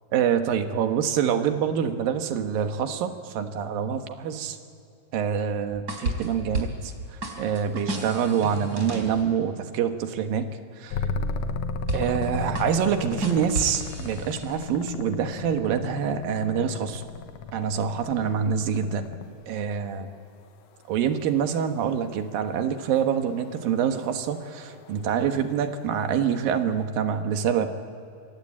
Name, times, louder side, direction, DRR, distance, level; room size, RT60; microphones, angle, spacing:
voice 1, 0.1-4.6 5.1-6.9 7.4-10.5 10.8-11.0 11.9-17.0 17.5-19.1 19.5-20.1 20.9-27.7, right 8 dB, 75° right, 7 dB, 3.1 m, -26 dB
sound 1, 5.9-6.9 7.2-9.2 11.9-12.3 12.5-14.6, right 2 dB, 25° right, 4.0 m, -32 dB
sound 2, 10.9-19.5 21.7-26.2, left 4 dB, 70° left, 2.3 m, -35 dB
27.0 x 24.0 x 8.6 m, 2.7 s
omnidirectional pair, 4.1 m